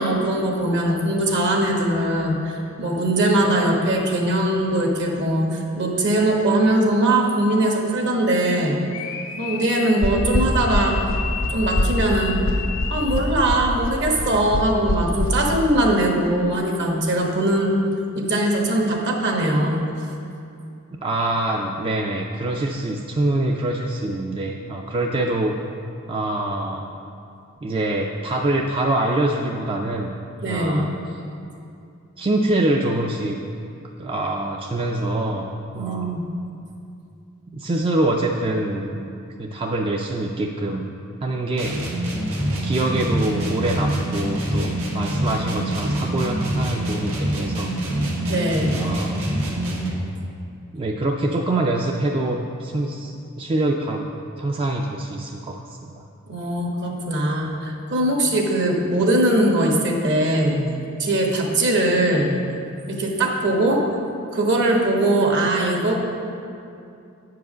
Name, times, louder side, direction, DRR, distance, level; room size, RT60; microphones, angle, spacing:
voice 1, 0.0-8.8 9.4-11.0 11.5-12.4 12.9-17.8 18.2-19.8 30.4-30.9 35.7-36.2 48.3-48.8 56.3-60.7 61.0-62.3 62.9-63.8 64.3-66.0, right 1 dB, 60° right, 0 dB, 1.2 m, -21 dB
sound 1, 8.8-13.6, left 7 dB, 70° left, 0.6 m, -33 dB
sound 2, 10.0-15.3, left 1 dB, 85° left, 1.0 m, -23 dB
voice 2, 21.0-25.6 26.1-26.9 27.6-30.2 30.5-30.9 32.2-33.4 34.0-35.5 35.7-36.2 37.5-39.0 39.4-40.9 41.2-41.8 42.6-47.7 48.7-49.3 50.7-54.1 54.3-56.0, right 2 dB, 25° right, 1 dB, 0.4 m, -25 dB
sound 3, 41.6-50.0, right 1 dB, 85° right, 1.4 m, -25 dB
8.4 x 4.7 x 6.1 m, 2.6 s
head